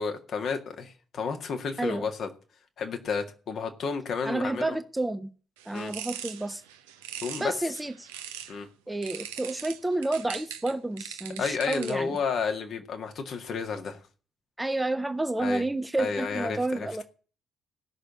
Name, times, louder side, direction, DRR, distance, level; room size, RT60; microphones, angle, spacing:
voice 1, 0.0-2.3 2.8-4.8 5.7-5.9 7.2-7.5 8.5-8.7 11.4-14.0 15.4-15.6 16.0-16.9, left 5 dB, 50° left, 2.0 m, -31 dB
voice 2, 4.2-5.3 5.7-6.6 7.4-8.1 8.9-12.2 14.6-17.0, right 2 dB, 10° right, 1.1 m, -30 dB
sound 1, 5.6-8.6 9.0-12.2, right 10 dB, 70° right, 1.0 m, -41 dB
16.0 x 6.6 x 8.8 m
figure-of-eight pair, 45°, 0 cm